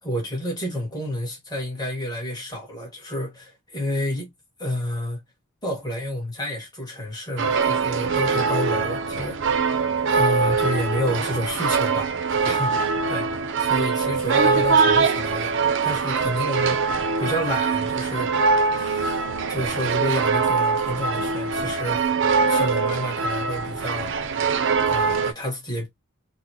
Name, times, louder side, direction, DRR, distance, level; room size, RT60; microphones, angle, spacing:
voice 1, 0.0-4.3 4.6-5.2 5.6-9.7 10.1-13.3 13.6-18.3 18.7-22.1 22.5-24.2 24.9-25.9, left 1 dB, 20° left, 1.4 m, -30 dB
sound 1, 7.4-25.3, right 5 dB, 55° right, 0.5 m, -23 dB
3.9 x 2.0 x 2.8 m
head